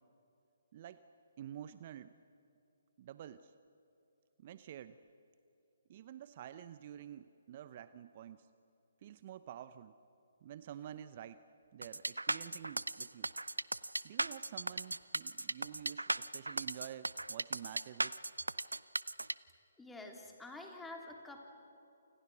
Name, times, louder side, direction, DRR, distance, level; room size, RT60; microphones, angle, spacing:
voice 1, 0.7-1.0 1.4-2.1 3.0-3.5 4.4-5.0 5.9-8.5 9.0-10.0 10.4-11.4 11.7-13.3 14.0-18.2, right 10 dB, 40° right, 13 dB, 0.8 m, -49 dB
sound 1, 11.8-19.3, right 2 dB, 90° right, 0.6 m, -37 dB
voice 2, 19.8-21.4, left 2 dB, 5° left, 1 dB, 3.4 m, -48 dB
29.5 x 28.5 x 6.3 m, 2.8 s
figure-of-eight pair, 140°, 0 cm